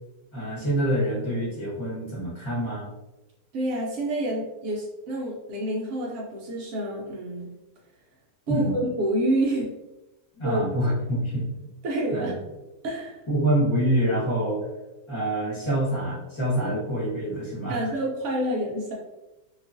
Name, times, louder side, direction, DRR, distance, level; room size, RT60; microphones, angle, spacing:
voice 1, 0.3-2.9 8.5-8.8 10.3-11.5 12.1-12.3 13.3-14.6 15.1-17.8, right 1 dB, 25° left, -6 dB, 0.7 m, -26 dB
voice 2, 3.5-7.5 8.5-8.7 9.0-9.7 10.4-10.6 11.8-12.3 12.8-13.2 17.7-18.9, right 1 dB, 70° right, -3 dB, 0.7 m, -28 dB
2.9 x 2.3 x 2.5 m, 1.0 s
omnidirectional pair, 1.8 m